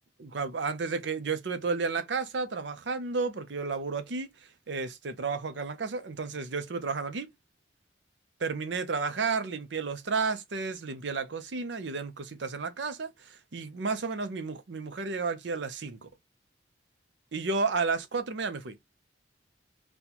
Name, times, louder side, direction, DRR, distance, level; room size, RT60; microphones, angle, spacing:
voice 1, 0.2-4.3 4.7-7.3 8.4-16.1 17.3-18.8, right 4 dB, 75° right, 0.6 m, -32 dB
4.2 x 2.2 x 2.8 m
head